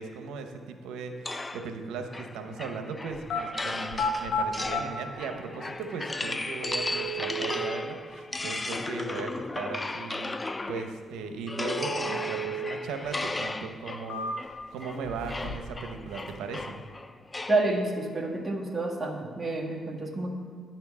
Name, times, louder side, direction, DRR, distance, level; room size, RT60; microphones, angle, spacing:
voice 1, 0.0-10.4 10.7-16.8, right 4 dB, 90° right, 6 dB, 0.8 m, -38 dB
sound 1, 1.2-11.0 11.5-17.7, left 2 dB, 20° left, 0.3 m, -36 dB
sound 2, 3.1-3.4 3.9-4.8 5.8-5.9 6.6-7.7 11.6-12.7 13.0-13.1 13.7-14.6 15.0-15.8 16.0-16.6, equal, 65° left, 1.0 m, -33 dB
voice 2, 17.5-20.3, right 2 dB, 15° right, -2 dB, 1.6 m, -29 dB
10.5 x 4.4 x 7.0 m, 2.1 s
cardioid pair, 90°, 0 cm